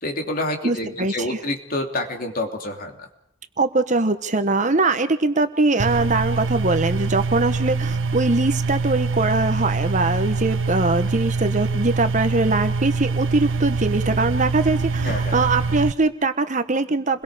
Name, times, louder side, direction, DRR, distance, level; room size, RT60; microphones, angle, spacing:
voice 1, 0.0-3.1 15.0-15.4, left 1 dB, 45° left, 3 dB, 3.0 m, -28 dB
voice 2, 0.6-1.4 3.6-17.2, right 2 dB, 40° right, 9 dB, 1.2 m, -22 dB
sound 1, 5.8-15.9, right 4 dB, 75° right, 0.8 m, -24 dB
29.5 x 22.5 x 5.0 m, 0.74 s
head